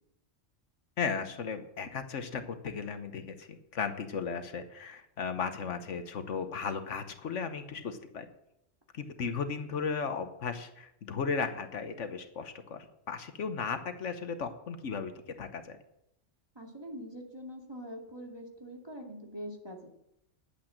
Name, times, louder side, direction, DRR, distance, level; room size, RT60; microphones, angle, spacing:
voice 1, 1.0-8.3 8.9-15.1 15.4-15.8, left 5 dB, 75° left, 8 dB, 1.3 m, -35 dB
voice 2, 16.6-19.9, equal, 20° right, 1 dB, 2.2 m, -43 dB
10.5 x 8.8 x 7.5 m, 0.80 s
omnidirectional pair, 1.3 m